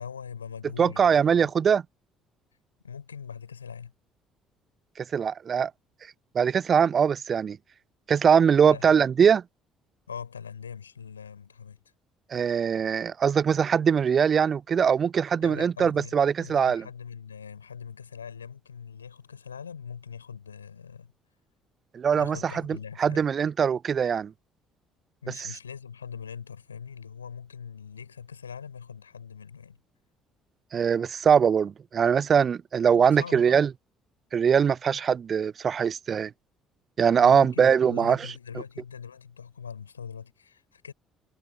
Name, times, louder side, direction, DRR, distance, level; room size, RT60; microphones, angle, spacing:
voice 1, 0.0-1.5 2.8-3.9 8.7-9.0 10.1-11.8 15.4-21.1 22.1-23.3 25.2-29.8 32.9-33.6 37.1-40.9, left 7 dB, 85° left, 7.2 m, -42 dB
voice 2, 0.8-1.8 5.0-5.7 6.3-7.6 8.1-9.4 12.3-16.8 21.9-22.5 23.0-24.3 30.7-33.7 34.3-36.3 37.0-38.2, right 7 dB, 40° right, 0.5 m, -22 dB
figure-of-eight pair, 50°, 0 cm